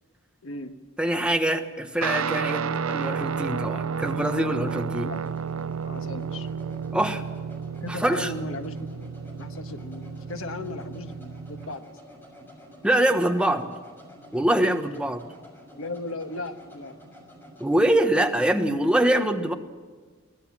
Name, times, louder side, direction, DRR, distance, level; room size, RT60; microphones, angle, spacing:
voice 1, 0.4-0.7 5.0-5.2 5.8-6.5 7.8-11.9 15.7-16.9, left 2 dB, 70° left, 7 dB, 1.5 m, -37 dB
voice 2, 1.0-5.1 6.9-7.2 7.9-8.3 12.8-13.7 14.3-15.2 17.6-19.5, right 1 dB, 5° right, 5 dB, 1.2 m, -24 dB
Guitar, 2.0-11.7, right 6 dB, 75° right, 0.6 m, -32 dB
sound 1, 4.8-18.1, equal, 10° left, 6.1 m, -49 dB
24.0 x 18.5 x 7.4 m, 1.4 s
head